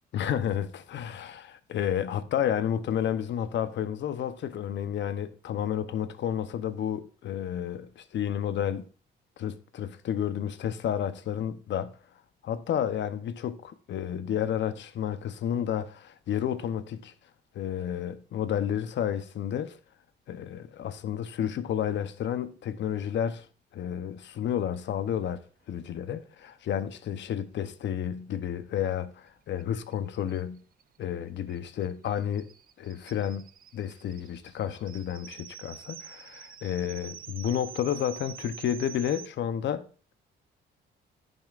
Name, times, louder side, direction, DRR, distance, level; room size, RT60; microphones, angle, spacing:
voice 1, 0.1-8.9 9.4-12.0 12.4-17.1 17.5-19.8 20.3-23.5 23.7-25.4 25.7-30.6 31.0-32.5 32.8-33.5 33.7-39.9, left 9 dB, 65° left, 0.8 m, -31 dB
sound 1, 29.6-29.7 29.9-30.0 30.3-39.3, right 9 dB, 45° right, 0.5 m, -47 dB
14.0 x 5.4 x 2.5 m
cardioid pair, 90°, 20 cm